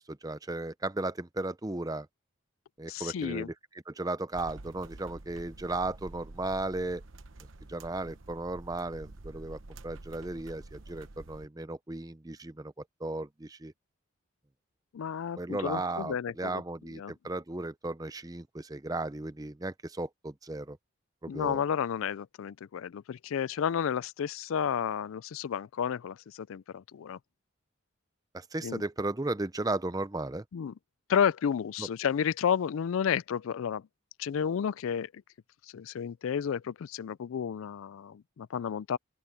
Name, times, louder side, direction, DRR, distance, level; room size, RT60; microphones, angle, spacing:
voice 1, 0.0-2.1 2.8-3.5 3.9-7.0 7.7-12.7 13.0-13.7 15.4-20.8 21.2-21.6 28.3-30.4 31.8-31.9, right 2 dB, 15° right, 0.6 m, -35 dB
voice 2, 2.9-3.5 14.9-16.6 16.9-17.1 21.3-27.2 28.6-28.8 30.5-30.7 31.1-33.8 34.2-35.1 35.7-39.0, left 7 dB, 70° left, 0.3 m, -31 dB
sound 1, 4.3-11.5, right 2 dB, 65° right, 1.0 m, -48 dB
open air
head